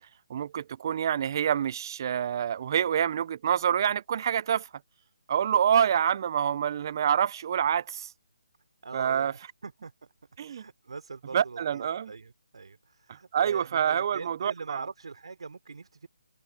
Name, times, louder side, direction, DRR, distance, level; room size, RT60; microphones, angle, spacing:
voice 1, 0.3-4.7 5.3-8.1 8.9-9.3 10.4-10.6 11.3-12.1 13.1-14.8, right 9 dB, 40° right, 0.6 m, -27 dB
voice 2, 8.8-10.1 10.5-16.1, right 4 dB, 70° right, 3.2 m, -42 dB
hypercardioid pair, 155°, 3 cm